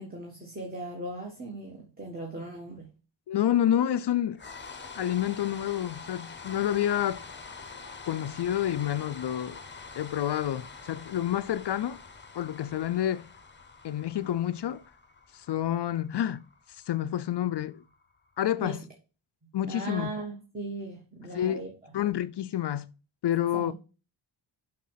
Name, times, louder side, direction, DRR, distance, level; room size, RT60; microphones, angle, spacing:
voice 1, 0.0-2.9 18.6-18.7 19.7-21.7 23.5-23.7, right 2 dB, 20° right, 1.7 m, -38 dB
voice 2, 3.3-4.4 4.9-7.2 8.1-9.6 10.0-12.0 12.3-13.3 13.8-14.8 15.3-16.4 16.7-17.8 18.4-18.8 19.5-20.1 21.3-21.6 21.9-22.9 23.2-23.7, left 11 dB, 60° left, 0.5 m, -28 dB
sound 1, 4.4-18.5, left 4 dB, 25° left, 0.8 m, -46 dB
6.3 x 6.1 x 5.6 m
wide cardioid pair, 150°, 47 cm